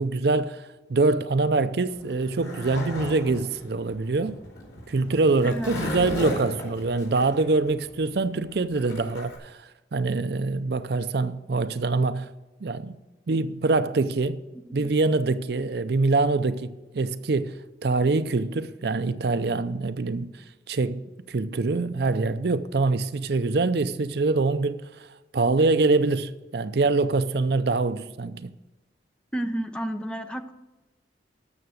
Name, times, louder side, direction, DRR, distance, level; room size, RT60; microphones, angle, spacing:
voice 1, 0.0-4.4 4.9-12.3 12.6-13.0 13.3-14.4 14.7-20.3 20.7-28.5, right 3 dB, 60° right, 0.5 m, -24 dB
Skateboard, 1.9-9.4, left 1 dB, 80° left, 4.5 m, -35 dB
voice 2, 5.4-5.8 14.7-14.9 29.3-30.5, right 1 dB, 5° left, 0.6 m, -31 dB
13.0 x 6.7 x 6.4 m
head